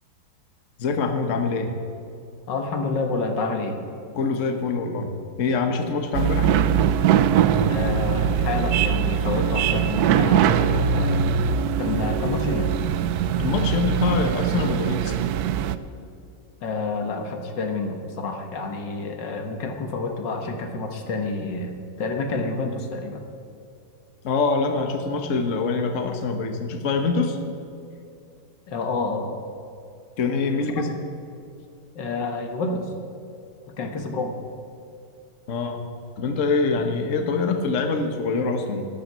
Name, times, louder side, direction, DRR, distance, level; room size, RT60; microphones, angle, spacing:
voice 1, 0.8-1.7 4.1-5.1 5.4-6.5 13.4-15.2 24.2-27.4 30.2-30.9 35.5-35.8 36.2-38.9, left 4 dB, 50° left, 5 dB, 1.4 m, -24 dB
voice 2, 2.5-3.8 7.7-11.3 11.8-12.7 16.6-23.2 28.7-29.3 30.6-30.7 32.0-32.9 33.7-34.4, left 3 dB, 80° left, 5 dB, 2.1 m, -28 dB
sound 1, 6.1-15.8, right 8 dB, 70° right, 1.0 m, -22 dB
13.0 x 11.5 x 7.4 m, 2.6 s
omnidirectional pair, 1.9 m